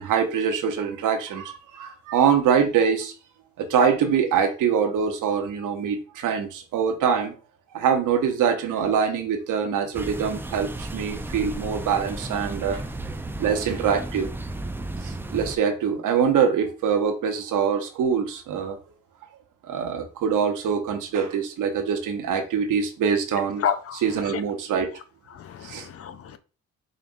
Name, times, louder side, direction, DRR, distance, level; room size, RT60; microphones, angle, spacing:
voice 1, 0.0-3.1 3.6-7.3 7.7-12.9 13.4-14.3 15.0-18.8 19.6-23.6 24.0-24.9 25.6-25.9, right 7 dB, 70° right, 0.9 m, -24 dB
sound 1, 9.9-15.6, right 2 dB, 5° right, 0.4 m, -34 dB
voice 2, 23.6-24.0 25.3-26.4, left 8 dB, 45° left, 0.5 m, -29 dB
5.1 x 2.5 x 2.5 m
supercardioid pair, 60°, 33 cm